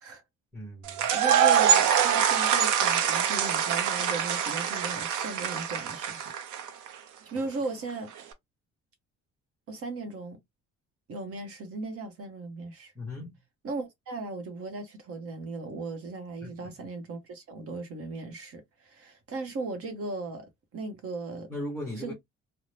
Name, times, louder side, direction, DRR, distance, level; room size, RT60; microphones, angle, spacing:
voice 1, 0.5-1.1 7.3-7.5 12.9-13.4 16.4-16.7 21.5-22.1, left 1 dB, ahead, 0.9 m, -38 dB
sound 1, 0.9-6.9, right 8 dB, 90° right, 0.6 m, -24 dB
voice 2, 1.1-6.2 7.2-8.1 9.7-10.4 11.1-12.9 13.6-20.5 20.7-21.5 22.0-22.1, right 3 dB, 50° right, 0.8 m, -37 dB
2.6 x 2.1 x 3.1 m
cardioid pair, 160°, 29 cm